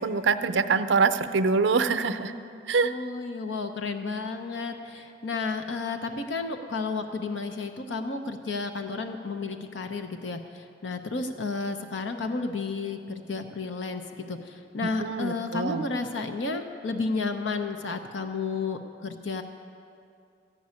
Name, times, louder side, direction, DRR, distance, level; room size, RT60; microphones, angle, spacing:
voice 1, 0.0-2.3 2.7-2.9 14.8-15.8, right 4 dB, 80° right, 10 dB, 0.5 m, -24 dB
voice 2, 2.8-19.4, left 3 dB, 90° left, 6 dB, 0.7 m, -32 dB
14.5 x 5.4 x 9.5 m, 2.5 s
head